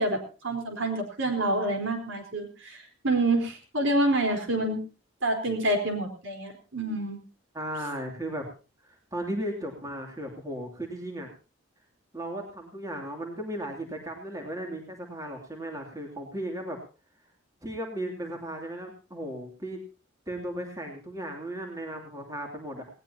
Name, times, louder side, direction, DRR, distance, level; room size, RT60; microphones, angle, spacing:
voice 1, 0.0-2.8 3.0-4.8 5.2-7.2, right 1 dB, 70° right, 4 dB, 4.2 m, -27 dB
voice 2, 7.5-8.5 8.8-11.3 12.1-16.8 17.6-19.8 20.3-22.8, right 1 dB, 15° right, 2 dB, 2.8 m, -36 dB
19.0 x 18.5 x 2.9 m, 0.35 s
head